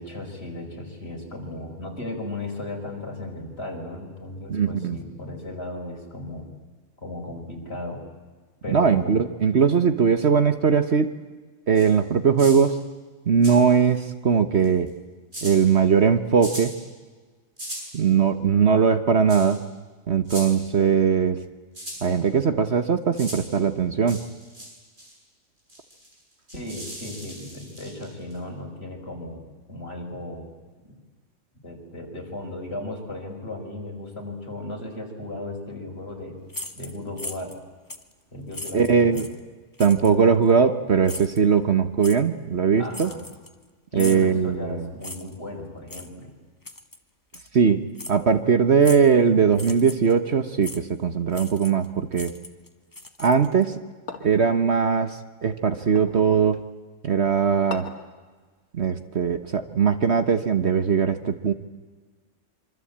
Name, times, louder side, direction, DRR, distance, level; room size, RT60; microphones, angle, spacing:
voice 1, 0.0-6.5 7.0-8.0 8.6-9.2 26.5-29.4 29.7-30.5 30.8-30.9 31.6-36.4 36.7-37.5 38.3-39.2 42.8-43.3 43.9-46.3, left 1 dB, 45° left, 1 dB, 5.5 m, -35 dB
voice 2, 4.5-5.0 8.7-11.1 11.7-12.8 13.3-14.9 15.4-16.7 17.9-19.6 20.1-21.4 22.0-24.2 38.7-39.2 39.8-43.1 43.9-44.9 47.5-52.3 53.2-53.8 54.2-56.6 57.0-57.9 58.7-61.5, right 6 dB, 50° right, 10 dB, 1.4 m, -20 dB
sound 1, 11.7-11.9 12.4-12.6 13.4-14.0 14.6-14.9 15.3-15.6 16.4-16.7 17.6-17.9 19.3-19.6 20.2-20.5 21.7-22.0 23.1-23.4 24.1-24.7 25.0-25.1 25.7-28.4, equal, 35° right, 8.3 m, -38 dB
sound 2, 36.5-37.6 37.9-38.1 38.5-39.4 39.8-40.1 41.0-41.4 42.0-42.2 42.9-43.6 44.0-44.3 45.0-45.4 45.9-46.1 46.6-47.0 47.3-47.5 48.0-48.2 48.8-49.1 49.5-50.1 50.6-50.8 51.3-51.9 52.1-53.6, left 2 dB, 15° left, 1.4 m, -38 dB
sound 3, 54.1-54.5 55.9-56.2 57.7-58.1, left 4 dB, 75° left, 2.8 m, -37 dB
26.0 x 24.5 x 8.8 m, 1.4 s
omnidirectional pair, 1.4 m